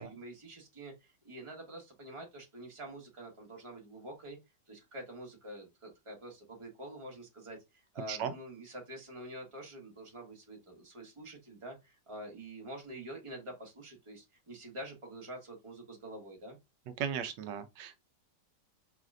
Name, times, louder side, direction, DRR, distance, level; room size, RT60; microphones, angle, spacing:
voice 1, 0.0-4.4 4.7-16.6, right 1 dB, 20° right, 1.3 m, -47 dB
voice 2, 17.0-18.0, right 8 dB, 80° right, 1.3 m, -36 dB
4.9 x 3.2 x 2.5 m
omnidirectional pair, 1.9 m